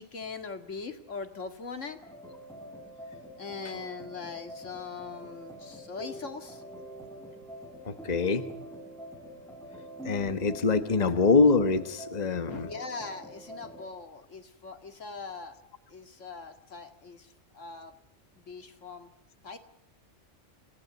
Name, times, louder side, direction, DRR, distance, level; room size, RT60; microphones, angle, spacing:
voice 1, 0.0-2.0 3.4-6.6 12.5-15.6 15.9-17.3 17.5-17.9 18.4-19.1 19.4-19.6, left 4 dB, 85° left, 7 dB, 2.5 m, -41 dB
sound 1, 2.0-13.9, right 1 dB, ahead, 3.8 m, -45 dB
voice 2, 7.8-8.5 10.0-12.7, left 4 dB, 35° left, 10 dB, 1.3 m, -24 dB
27.5 x 17.0 x 9.6 m, 0.74 s
omnidirectional pair, 1.3 m